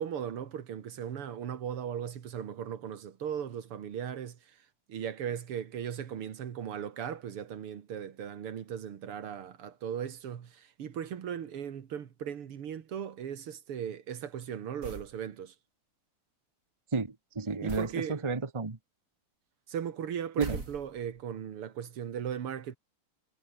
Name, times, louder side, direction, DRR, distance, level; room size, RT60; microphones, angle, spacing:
voice 1, 0.0-4.6 4.9-15.5 17.6-18.2 19.7-22.8, right 8 dB, 80° right, 2.6 m, -37 dB
sound 1, 14.8-15.2 17.7-18.0 20.4-21.2, right 3 dB, 35° right, 3.8 m, -40 dB
voice 2, 16.9-18.8 20.4-20.6, right 3 dB, 15° right, 1.3 m, -32 dB
omnidirectional pair, 2.4 m